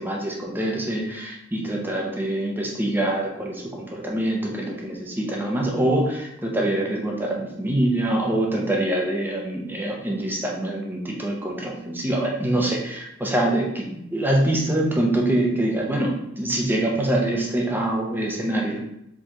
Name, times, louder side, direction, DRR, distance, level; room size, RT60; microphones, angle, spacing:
voice 1, 0.0-18.8, right 1 dB, 10° right, -1 dB, 0.7 m, -25 dB
4.6 x 3.9 x 2.9 m, 0.81 s
head